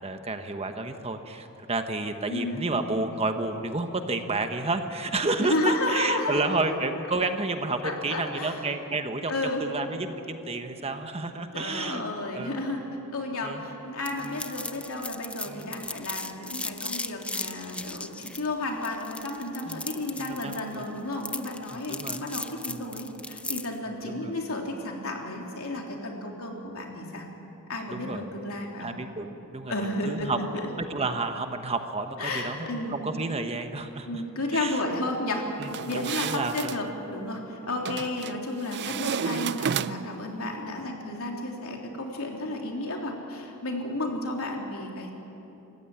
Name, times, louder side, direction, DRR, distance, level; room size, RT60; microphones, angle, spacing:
voice 1, 0.0-9.3 9.6-12.0 12.3-12.6 13.4-13.6 14.2-14.4 15.5-15.7 19.6-19.8 20.2-20.8 21.7-22.2 22.7-22.8 23.9-24.4 27.9-28.2 28.8-29.7 30.0-30.4 30.8-34.2 34.5-34.8 35.6-36.7, right 3 dB, 30° right, 7 dB, 1.2 m, -31 dB
voice 2, 2.3-2.7 5.4-6.8 7.8-8.6 9.3-9.7 11.5-12.8 13.1-27.3 27.7-28.9 29.7-30.7 32.2-33.0 34.1-35.4 35.9-45.1, left 2 dB, 70° left, 0 dB, 3.5 m, -32 dB
sound 1, 14.0-23.8, left 2 dB, 5° left, 0.5 m, -37 dB
sound 2, 35.6-36.8 37.9-38.4 38.7-40.2, right 7 dB, 50° right, 0.5 m, -31 dB
26.0 x 15.0 x 9.8 m, 2.9 s
head